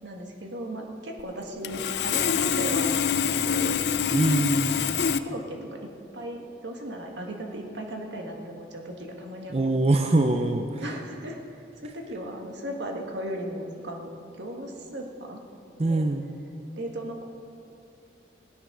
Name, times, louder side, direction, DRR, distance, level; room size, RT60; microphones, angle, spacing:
voice 1, 0.0-2.9 3.2-4.1 4.4-4.9 5.2-5.9 6.1-9.6 9.9-10.1 10.8-14.1 14.4-15.4 15.8-16.0 16.8-17.2, right 1 dB, 75° right, 2 dB, 1.7 m, -36 dB
Sawing, 1.2-1.3 1.6-5.2, left 7 dB, 65° left, 0.5 m, -25 dB
voice 2, 4.1-4.8 9.5-10.8 15.8-16.2, right 2 dB, 35° right, 5 dB, 0.6 m, -23 dB
16.0 x 10.0 x 6.1 m, 2.5 s
head